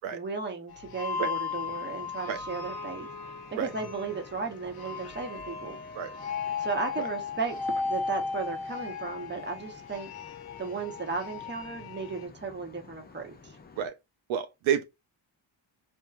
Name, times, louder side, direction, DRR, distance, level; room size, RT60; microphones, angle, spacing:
voice 1, 0.1-3.1 3.5-5.8 6.6-10.1 10.6-13.6, right 4 dB, 25° right, 0.9 m, -35 dB
sound 1, 0.7-12.3, left 5 dB, 50° left, 0.8 m, -36 dB
sound 2, 1.5-13.9, left 4 dB, 20° left, 0.5 m, -52 dB
voice 2, 14.3-14.8, right 8 dB, 75° right, 0.6 m, -29 dB
3.0 x 2.2 x 2.3 m
cardioid pair, 80°, 48 cm